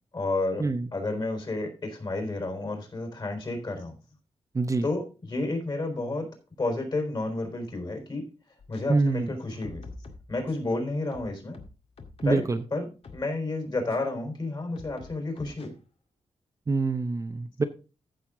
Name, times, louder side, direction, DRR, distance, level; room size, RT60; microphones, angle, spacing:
voice 1, 0.1-0.6 0.9-4.0 4.8-6.3 6.6-8.3 8.7-9.8 10.3-11.6 12.2-15.7, left 2 dB, 40° left, 4.1 m, -31 dB
voice 2, 4.5-4.9 8.9-9.3 12.2-12.6 16.7-17.6, right 3 dB, 30° right, 0.7 m, -25 dB
sound 1, 8.6-8.8 9.4-10.7 11.1-12.5 13.0-13.3 13.9-14.0 14.8-15.7, left 3 dB, 60° left, 2.0 m, -46 dB
14.5 x 6.5 x 3.7 m
wide cardioid pair, 135°, 11 cm